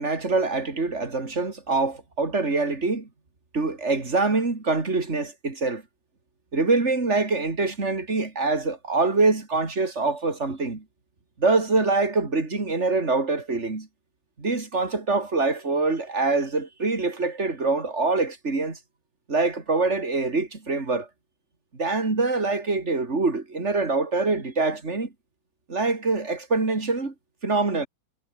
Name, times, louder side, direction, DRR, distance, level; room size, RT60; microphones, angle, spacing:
voice 1, 0.0-3.1 3.5-5.8 6.5-10.8 11.4-13.9 14.4-18.8 19.3-21.1 21.8-25.1 25.7-27.1 27.4-27.9, right 3 dB, 35° right, 3.3 m, -24 dB
omnidirectional pair, 2.2 m